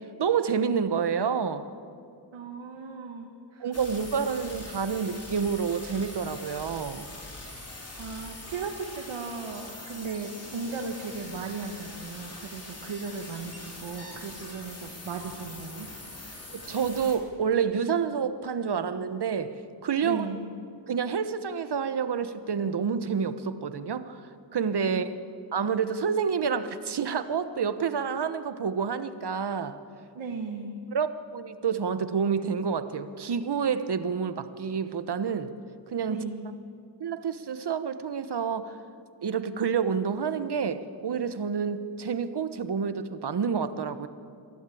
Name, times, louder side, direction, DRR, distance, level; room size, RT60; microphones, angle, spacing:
voice 1, 0.0-1.7 3.6-7.1 16.5-20.3 20.9-24.2 24.5-25.1 25.5-29.8 30.9-35.5 35.9-36.2 37.0-38.8 39.2-44.1, right 6 dB, 55° right, 11 dB, 1.2 m, -28 dB
voice 2, 2.3-3.7 8.0-15.9 20.0-20.4 24.9-25.1 30.2-30.8 36.1-36.6, right 4 dB, 85° right, 2 dB, 1.7 m, -36 dB
sound 1, 3.7-17.2, left 2 dB, 30° left, 4.2 m, -43 dB
22.5 x 15.5 x 8.5 m, 2.4 s
cardioid pair, 85°, 46 cm